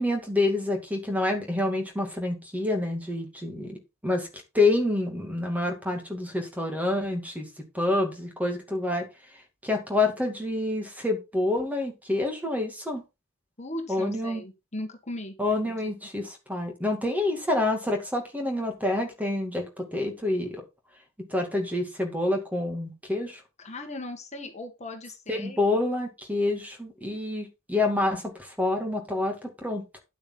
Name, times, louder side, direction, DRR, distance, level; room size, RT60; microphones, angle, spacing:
voice 1, 0.0-4.3 4.5-7.5 7.7-9.1 9.6-13.0 13.9-14.4 15.4-20.6 21.3-23.4 25.3-30.0, left 2 dB, 5° right, 3 dB, 2.4 m, -27 dB
voice 2, 13.6-15.4 15.7-15.9 23.6-25.6, left 1 dB, 30° left, 4 dB, 1.8 m, -38 dB
10.0 x 8.8 x 3.9 m, 0.26 s
head